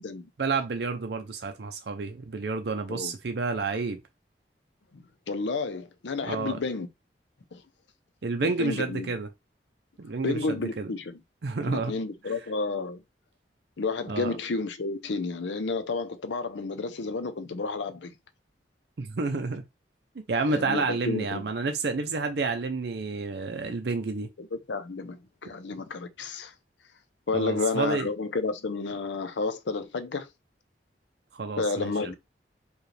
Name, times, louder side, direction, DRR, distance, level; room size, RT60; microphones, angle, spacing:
voice 1, 0.4-4.0 6.2-6.6 8.2-9.3 10.0-10.9 11.4-11.9 12.3-12.4 14.1-14.4 19.0-19.6 20.3-24.3 27.3-28.1 31.3-32.1, right 4 dB, 65° right, 0.5 m, -30 dB
voice 2, 4.9-6.9 7.5-7.6 8.4-9.1 10.2-11.2 11.6-13.0 13.8-18.1 20.5-21.4 24.4-26.5 27.3-30.3 31.6-32.1, left 3 dB, 80° left, 0.6 m, -31 dB
4.8 x 2.3 x 3.2 m
head